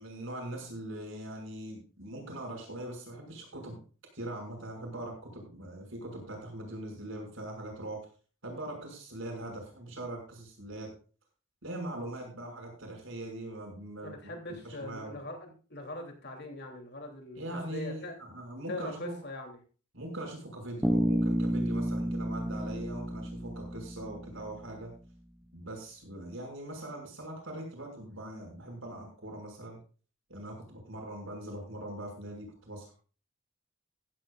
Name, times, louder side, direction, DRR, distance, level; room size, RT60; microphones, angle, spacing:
voice 1, 0.0-3.8 4.1-8.0 8.4-10.9 11.6-14.3 14.6-15.2 17.4-19.1 19.9-24.9 25.5-29.8 30.3-32.9, right 1 dB, 65° right, 1 dB, 6.3 m, -41 dB
voice 2, 14.0-18.2 18.7-19.6, left 1 dB, 50° left, 3 dB, 3.2 m, -41 dB
Bass guitar, 20.8-24.7, equal, ahead, 0.6 m, -31 dB
15.0 x 15.0 x 2.5 m, 0.38 s
head